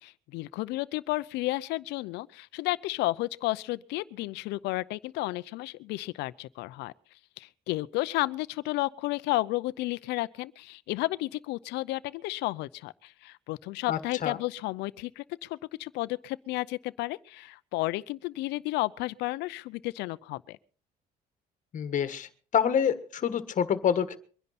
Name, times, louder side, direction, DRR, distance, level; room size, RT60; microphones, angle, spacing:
voice 1, 0.0-6.9 7.4-20.6, left 19 dB, 90° left, 0.6 m, -32 dB
voice 2, 13.9-14.4 21.7-24.2, left 8 dB, 50° left, 1.5 m, -27 dB
24.0 x 10.5 x 4.2 m
cardioid pair, 110°, 17 cm